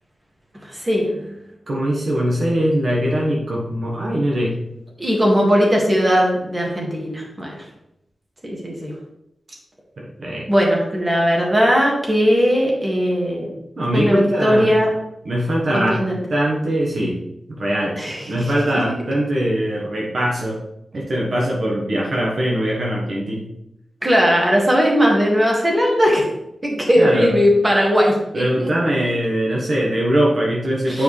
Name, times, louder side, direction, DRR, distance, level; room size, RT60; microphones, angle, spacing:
voice 1, 0.6-1.3 5.0-7.6 8.4-8.9 10.5-13.5 13.9-14.9 15.7-16.2 18.0-18.5 18.9-19.0 24.0-26.2 26.6-28.7 30.9-31.0, equal, 20° right, -2 dB, 1.9 m, -18 dB
voice 2, 1.7-4.6 10.0-10.5 13.8-14.7 15.2-16.0 16.3-17.2 17.5-17.9 18.3-20.6 20.9-23.5 27.0-27.3 28.3-31.0, equal, 55° right, -3 dB, 1.3 m, -21 dB
8.6 x 4.9 x 3.3 m, 0.84 s
wide cardioid pair, 145°, 0 cm